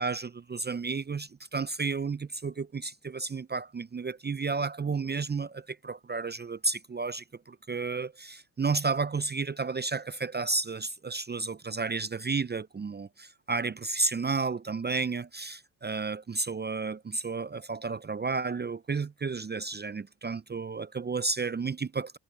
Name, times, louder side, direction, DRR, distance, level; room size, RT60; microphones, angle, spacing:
voice 1, 0.0-22.2, right 4 dB, 20° right, 0.7 m, -32 dB
hypercardioid pair, 50°, 46 cm